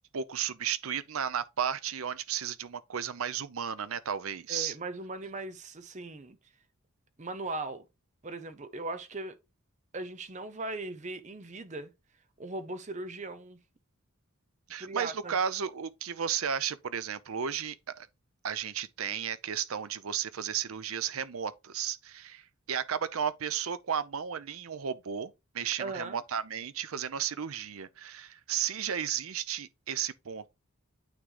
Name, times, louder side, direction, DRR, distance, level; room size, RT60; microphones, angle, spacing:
voice 1, 0.1-4.7 14.7-18.1 18.4-30.5, right 8 dB, 75° right, 0.6 m, -34 dB
voice 2, 4.5-6.4 7.2-7.9 8.2-9.4 9.9-11.9 12.4-13.6 14.8-15.4 25.8-26.2, right 2 dB, 35° right, 0.7 m, -38 dB
9.0 x 3.2 x 3.8 m
head